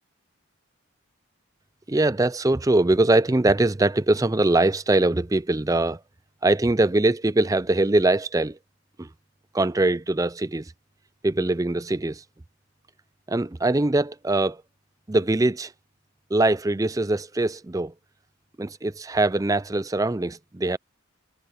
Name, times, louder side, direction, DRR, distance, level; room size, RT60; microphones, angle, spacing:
voice 1, 1.9-6.0 6.4-8.6 9.0-9.1 9.5-10.7 11.2-12.2 13.3-14.6 15.1-15.7 16.3-17.9 18.6-20.8, right 2 dB, 15° right, 0.4 m, -22 dB
head